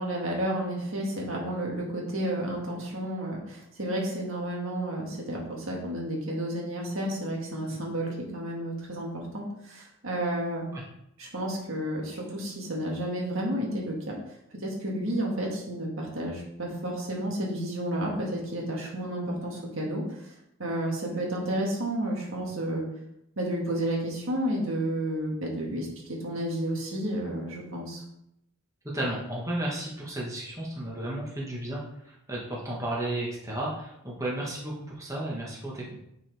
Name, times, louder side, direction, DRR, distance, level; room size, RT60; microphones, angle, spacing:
voice 1, 0.0-10.7 11.2-14.2 14.5-20.0 20.6-22.9 23.4-28.0, right 1 dB, 65° right, -2 dB, 1.9 m, -31 dB
voice 2, 28.9-35.9, right 1 dB, 15° right, -5 dB, 1.5 m, -33 dB
9.9 x 4.7 x 3.5 m, 0.79 s
head